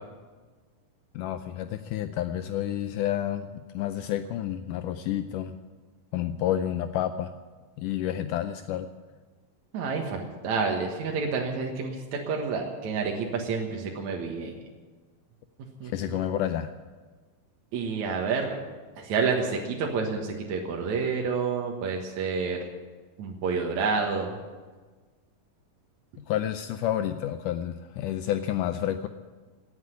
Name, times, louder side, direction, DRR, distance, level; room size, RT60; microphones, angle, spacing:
voice 1, 1.1-5.6 6.1-7.3 7.8-8.9 15.8-16.7 26.3-29.1, left 11 dB, 80° left, 9 dB, 2.0 m, -30 dB
voice 2, 9.7-12.0 12.3-14.5 15.8-16.2 17.7-18.5 19.0-22.6 23.2-24.3, right 5 dB, 65° right, 0 dB, 2.6 m, -29 dB
18.0 x 8.2 x 9.6 m, 1.4 s
omnidirectional pair, 3.9 m